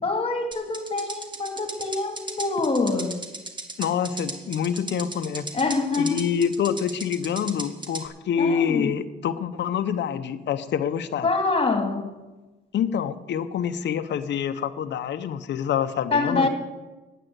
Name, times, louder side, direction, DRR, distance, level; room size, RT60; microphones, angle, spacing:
voice 1, 0.0-3.2 5.5-6.2 8.4-8.9 11.2-12.2 16.1-16.5, left 3 dB, 30° left, 2.2 m, -25 dB
sound 1, 0.5-8.1, right 2 dB, 25° right, 2.0 m, -36 dB
voice 2, 3.8-5.5 5.9-11.3 12.7-16.5, left 8 dB, 65° left, 0.8 m, -26 dB
10.0 x 9.0 x 8.0 m
cardioid pair, 90°, 20 cm